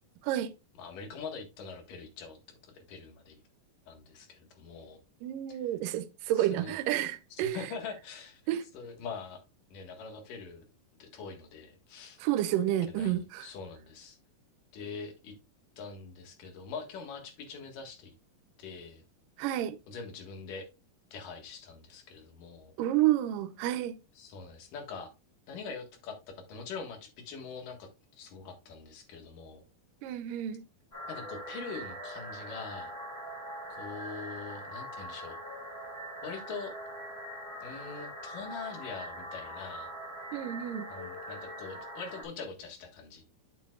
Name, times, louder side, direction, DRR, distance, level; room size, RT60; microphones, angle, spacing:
voice 1, 0.8-3.4 3.9-5.0 5.5-5.6 6.3-6.7 7.3-8.4 8.7-9.4 9.7-10.6 11.0-12.2 12.9-14.2 14.7-15.3 15.8-18.1 18.6-19.0 19.9-20.7 21.1-22.7 24.2-25.1 25.5-29.6 31.1-32.9 33.7-35.4 36.2-36.7 37.6-39.9 40.9-43.2, left 5 dB, 65° left, 3.2 m, -43 dB
voice 2, 5.2-7.6 8.5-8.6 12.2-13.5 19.4-19.8 22.8-24.0 30.0-30.6 40.3-40.9, right 13 dB, 75° right, 2.2 m, -30 dB
sound 1, 30.9-42.2, equal, 15° left, 3.4 m, -42 dB
9.5 x 7.2 x 2.4 m
omnidirectional pair, 4.2 m